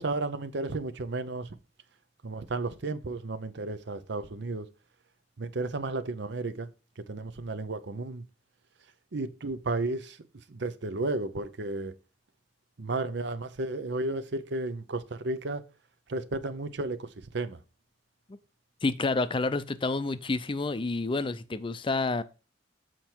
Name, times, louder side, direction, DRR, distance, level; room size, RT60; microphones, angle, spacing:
voice 1, 0.0-1.5 2.2-4.7 5.4-6.7 7.1-8.2 9.1-10.2 10.5-11.9 12.8-15.6 16.1-17.1 17.3-17.6, right 2 dB, 65° right, 0.7 m, -33 dB
voice 2, 18.8-22.2, left 3 dB, 30° left, 0.5 m, -29 dB
7.5 x 4.6 x 4.4 m
head